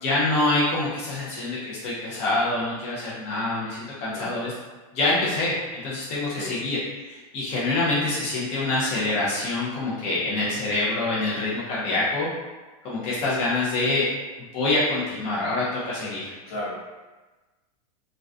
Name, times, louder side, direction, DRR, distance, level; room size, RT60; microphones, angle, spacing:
voice 1, 0.0-4.5 4.9-12.3 12.8-14.1 14.5-16.3, left 2 dB, 30° left, -7 dB, 0.5 m, -26 dB
voice 2, 16.5-16.8, left 1 dB, 65° left, -4 dB, 0.8 m, -33 dB
2.3 x 2.2 x 2.4 m, 1.2 s
supercardioid pair, 155°, 19 cm